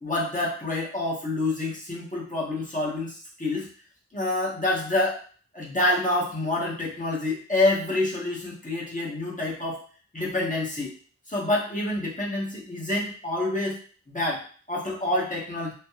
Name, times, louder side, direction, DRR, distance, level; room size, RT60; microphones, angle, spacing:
voice 1, 0.0-3.7 4.1-5.2 5.5-9.8 10.1-10.9 11.3-13.8 14.1-15.7, left 2 dB, 25° left, -4 dB, 1.0 m, -27 dB
3.2 x 2.2 x 2.9 m, 0.43 s
wide cardioid pair, 45°, 30 cm